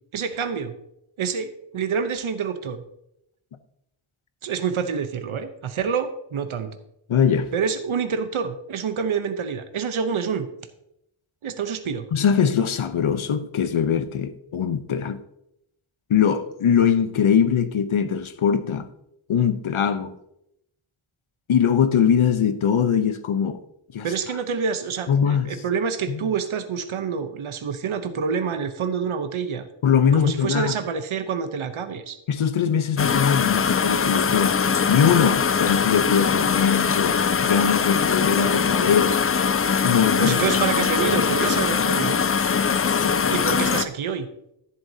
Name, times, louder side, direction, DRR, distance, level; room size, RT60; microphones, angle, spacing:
voice 1, 0.1-0.7 1.2-2.8 4.4-6.8 7.5-10.5 11.4-12.1 24.0-29.7 30.1-32.2 40.2-42.2 43.3-44.3, right 6 dB, 80° right, 0.9 m, -27 dB
voice 2, 7.1-7.5 12.1-15.2 16.1-18.9 19.3-20.1 21.5-23.6 23.9-24.1 25.1-25.5 26.1-26.3 29.8-30.7 32.3-34.6 34.9-39.2 39.8-40.4 41.1-41.2 42.8-43.5, left 7 dB, 80° left, 0.9 m, -21 dB
sound 1, 33.0-43.8, left 6 dB, 30° left, 0.4 m, -22 dB
11.0 x 10.5 x 2.8 m
wide cardioid pair, 85°, 49 cm